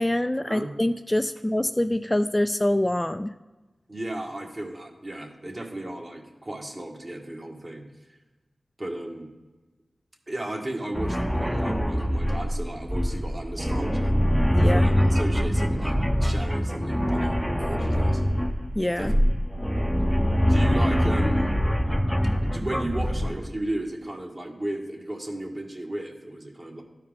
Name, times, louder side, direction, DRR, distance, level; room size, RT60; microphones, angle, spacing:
voice 1, 0.0-3.3 14.6-14.9 18.8-19.1, left 1 dB, 15° left, 9 dB, 0.3 m, -25 dB
voice 2, 3.9-7.8 8.8-9.3 10.3-14.2 14.7-18.2 19.0-19.1 20.5-21.6 22.4-26.8, right 1 dB, 40° right, 0 dB, 1.7 m, -34 dB
sound 1, 10.9-23.5, equal, ahead, 0.7 m, -24 dB
12.5 x 4.6 x 3.6 m, 1.2 s
cardioid pair, 50°, 0 cm